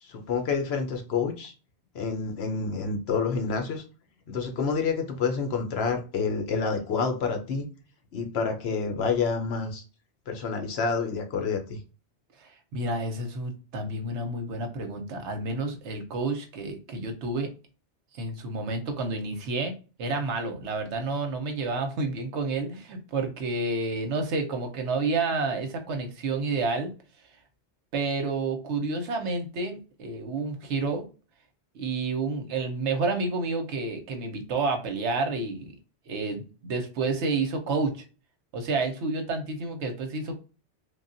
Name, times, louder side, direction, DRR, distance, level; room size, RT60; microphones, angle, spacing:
voice 1, 0.0-1.5 1.9-3.8 4.3-7.7 8.1-9.8 10.3-11.8, left 5 dB, 65° left, 4 dB, 0.9 m, -28 dB
voice 2, 12.4-17.5 18.1-19.7 20.0-26.9 27.9-31.1 31.7-35.7 36.1-38.0 38.5-40.4, right 3 dB, 80° right, 5 dB, 1.0 m, -30 dB
3.3 x 2.3 x 2.5 m, 0.34 s
omnidirectional pair, 1.2 m